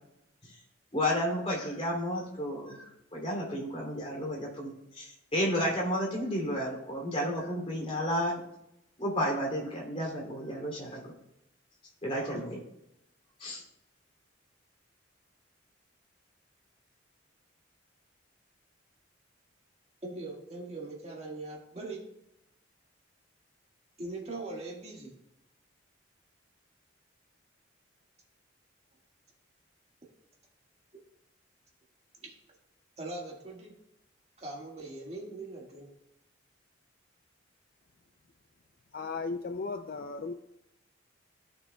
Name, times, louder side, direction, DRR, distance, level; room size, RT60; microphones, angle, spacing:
voice 1, 0.9-8.4 9.0-11.1 12.0-12.6 13.4-13.6, equal, 30° left, -2 dB, 2.8 m, -32 dB
voice 2, 20.0-22.0 24.0-25.1 32.2-32.3 33.0-33.7 34.4-35.9, right 2 dB, 35° right, -2 dB, 1.7 m, -41 dB
voice 3, 38.9-40.3, left 4 dB, 50° left, 6 dB, 0.4 m, -36 dB
14.5 x 6.7 x 2.3 m, 0.84 s
head